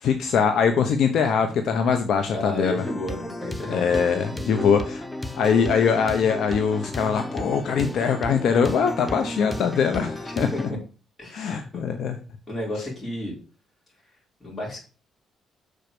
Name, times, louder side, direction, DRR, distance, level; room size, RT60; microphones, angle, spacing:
voice 1, 0.0-2.8 3.7-5.0 5.3-10.5 11.3-12.2, left 6 dB, 70° left, 6 dB, 1.0 m, -22 dB
voice 2, 2.3-4.0 4.3-4.8 10.2-10.8 11.2-11.8 12.5-13.3 14.4-14.9, left 1 dB, 25° left, -3 dB, 5.3 m, -32 dB
sound 1, 2.8-10.7, left 1 dB, 5° left, 0.8 m, -33 dB
6.6 x 4.6 x 6.8 m, 0.36 s
cardioid pair, 90°, 0 cm